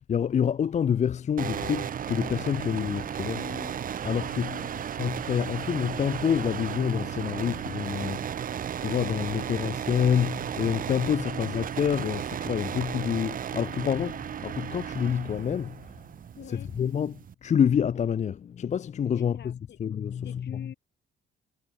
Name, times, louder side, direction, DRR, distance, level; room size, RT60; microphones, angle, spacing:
voice 1, 0.1-3.4 4.0-4.5 5.0-15.9 16.5-17.1 17.4-20.7, left 8 dB, 35° left, 0.4 m, -27 dB
sound 1, 1.4-17.3, right 9 dB, 45° right, 0.6 m, -34 dB
voice 2, 3.3-3.9 4.4-4.9 11.3-11.4 16.4-16.7 19.1-19.8 20.2-20.7, left 10 dB, 60° left, 1.3 m, -45 dB
cardioid pair, 90°, 20 cm